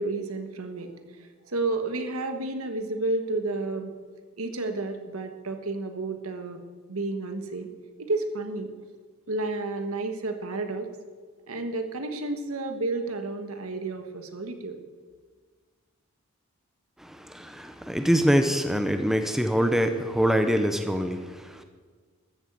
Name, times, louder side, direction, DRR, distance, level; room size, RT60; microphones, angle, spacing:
voice 1, 0.0-3.9 4.4-6.6 6.9-7.7 8.0-8.7 9.3-10.9 11.5-14.8, right 2 dB, 75° right, 6 dB, 1.5 m, -31 dB
voice 2, 17.0-21.6, equal, ahead, 7 dB, 0.8 m, -24 dB
13.5 x 8.9 x 8.2 m, 1.5 s
head